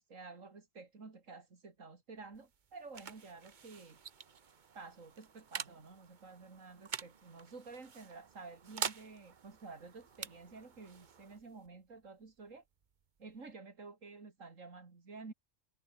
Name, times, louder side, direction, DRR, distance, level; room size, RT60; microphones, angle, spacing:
voice 1, 0.0-4.0 4.7-12.6 13.2-15.3, right 4 dB, 90° right, 3.1 m, -51 dB
sound 1, 2.2-13.5, right 6 dB, 40° right, 1.0 m, -47 dB
omnidirectional pair, 1.3 m